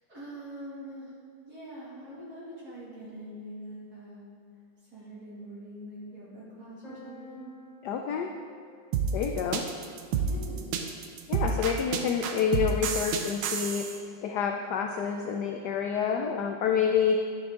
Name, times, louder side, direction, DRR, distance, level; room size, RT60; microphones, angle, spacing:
voice 1, 0.1-1.1 1.5-4.2 4.9-7.5 10.3-10.7, right 1 dB, 50° right, -8 dB, 2.8 m, -43 dB
sound 1, 6.8-10.6, left 1 dB, 20° left, 2.4 m, -52 dB
voice 2, 7.8-8.3 9.1-9.6 11.3-13.8 14.2-17.2, left 7 dB, 75° left, 3 dB, 0.9 m, -28 dB
sound 2, 8.9-14.0, right 6 dB, 80° right, 1.4 m, -29 dB
9.8 x 6.9 x 3.7 m, 2.1 s
omnidirectional pair, 2.2 m